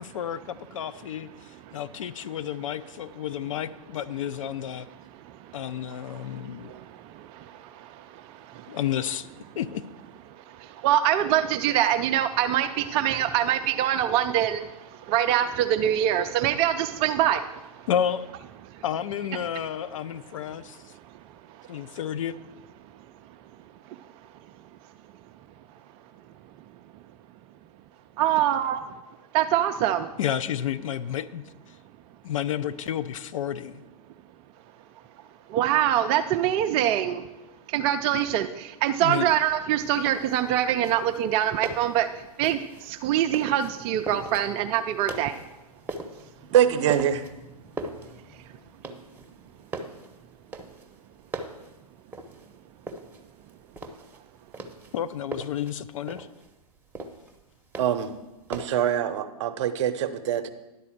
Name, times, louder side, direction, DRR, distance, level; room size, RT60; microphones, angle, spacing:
voice 1, 0.0-4.9 5.5-6.7 8.7-9.3 9.6-9.8 17.9-18.2 18.8-20.8 21.7-22.4 30.2-31.4 32.2-33.8 39.0-39.3 54.9-56.3, left 10 dB, 55° left, 13 dB, 0.5 m, -31 dB
voice 2, 1.4-1.8 5.1-8.8 10.3-17.9 21.1-21.2 21.5-22.0 23.9-24.0 28.2-28.9 29.3-30.1 35.5-37.3 37.7-45.4, right 11 dB, 30° right, 8 dB, 0.4 m, -25 dB
sound 1, 39.8-58.9, right 2 dB, 10° right, 0.8 m, -41 dB
voice 3, 46.5-47.2 57.8-58.1 58.5-60.5, right 10 dB, 50° right, 9 dB, 0.7 m, -24 dB
10.5 x 4.1 x 7.3 m, 1.0 s
figure-of-eight pair, 110°, 20 cm